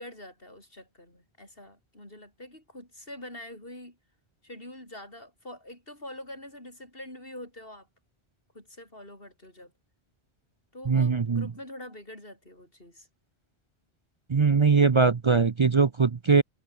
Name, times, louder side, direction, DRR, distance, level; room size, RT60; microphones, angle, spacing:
voice 1, 0.0-4.0 4.4-7.9 8.5-9.7 10.7-13.1, left 1 dB, 60° left, 8.2 m, -45 dB
voice 2, 10.9-11.5 14.3-16.4, right 5 dB, 35° right, 0.5 m, -21 dB
omnidirectional pair, 1.1 m